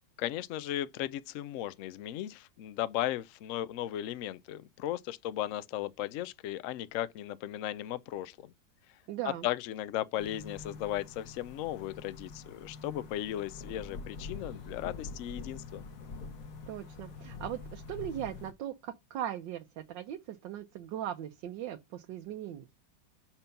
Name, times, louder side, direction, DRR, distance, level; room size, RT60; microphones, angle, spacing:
voice 1, 0.2-8.5 9.2-15.8, left 13 dB, 85° left, 0.6 m, -36 dB
voice 2, 9.1-9.5 16.7-22.7, right 11 dB, 80° right, 1.4 m, -39 dB
sound 1, 10.2-18.5, left 4 dB, 55° left, 1.3 m, -45 dB
5.2 x 4.4 x 5.7 m
omnidirectional pair, 2.0 m